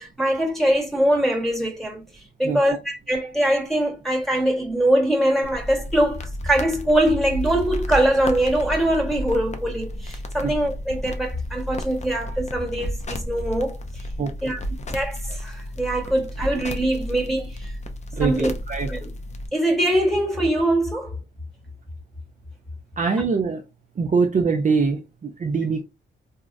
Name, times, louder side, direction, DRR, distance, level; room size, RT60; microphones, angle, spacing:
voice 1, 0.0-2.0 2.4-14.0 14.4-14.6 14.9-17.7 18.2-18.5 18.9-19.1 19.5-21.2, right 1 dB, ahead, 1.2 m, -22 dB
sound 1, 5.4-19.5, equal, 35° left, 0.5 m, -32 dB
voice 2, 18.1-18.9 23.0-23.6 24.0-25.9, right 5 dB, 40° right, 0.5 m, -23 dB
3.6 x 2.0 x 2.5 m
cardioid pair, 95°, 21 cm